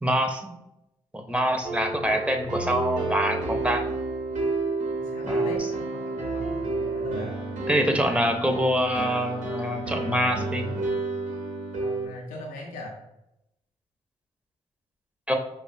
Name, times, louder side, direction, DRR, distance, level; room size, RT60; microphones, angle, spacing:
voice 1, 0.0-0.5 1.1-3.8 5.2-5.5 7.7-10.7 15.3-15.4, equal, 10° right, 4 dB, 0.6 m, -25 dB
sound 1, 1.6-12.1, right 3 dB, 60° right, 0.8 m, -30 dB
voice 2, 5.0-7.4 7.9-8.0 11.8-13.0, left 2 dB, 80° left, 0 dB, 0.4 m, -40 dB
4.9 x 2.0 x 2.5 m, 0.88 s
hypercardioid pair, 40°, 14 cm